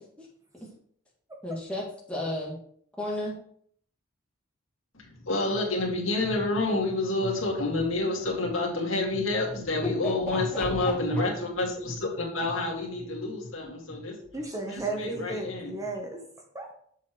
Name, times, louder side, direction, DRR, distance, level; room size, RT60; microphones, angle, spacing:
voice 1, 1.4-2.6 3.0-3.4 10.0-10.9, left 1 dB, 5° left, -5 dB, 2.0 m, -33 dB
voice 2, 4.9-14.1 14.7-15.8, left 2 dB, 80° left, -2 dB, 2.2 m, -28 dB
voice 3, 14.3-16.2 16.5-16.7, right 2 dB, 15° right, 2 dB, 0.9 m, -34 dB
7.4 x 7.1 x 3.1 m, 0.63 s
head